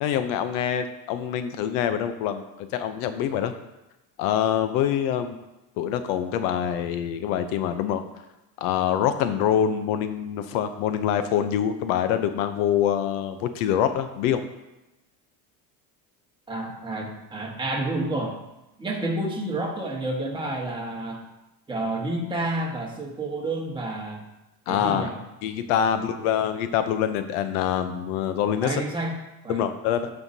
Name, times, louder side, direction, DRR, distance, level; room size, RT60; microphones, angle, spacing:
voice 1, 0.0-3.5 4.2-5.4 5.8-8.0 8.6-14.4 24.7-25.1 25.4-28.8 29.5-30.1, left 9 dB, 80° left, 9 dB, 0.8 m, -25 dB
voice 2, 16.5-18.4 18.8-21.2 21.7-24.2 24.7-25.2 25.9-26.1 28.6-29.6, right 2 dB, 10° right, -1 dB, 1.4 m, -30 dB
13.0 x 5.7 x 2.8 m, 0.99 s
cardioid pair, 130°, 40 cm